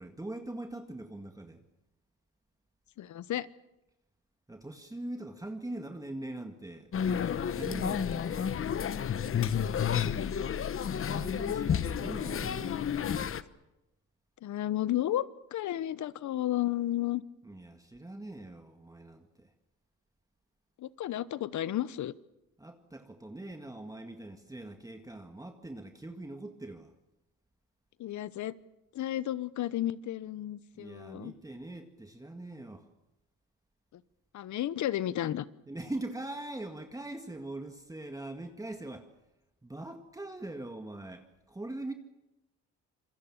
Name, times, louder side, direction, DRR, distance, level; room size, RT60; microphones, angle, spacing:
voice 1, 0.0-1.6 4.5-8.5 10.9-12.9 17.5-19.5 22.6-26.9 30.8-32.9 35.7-39.1 39.6-41.9, right 2 dB, 10° right, 5 dB, 1.9 m, -42 dB
voice 2, 3.0-3.5 9.8-9.9 14.4-15.3 15.5-17.2 20.8-22.1 28.0-28.5 28.9-31.3 34.3-35.5, left 13 dB, 70° left, 17 dB, 1.0 m, -32 dB
sound 1, 6.9-13.4, left 8 dB, 45° left, 1.1 m, -31 dB
27.0 x 22.5 x 7.4 m, 0.91 s
cardioid pair, 90°, 30 cm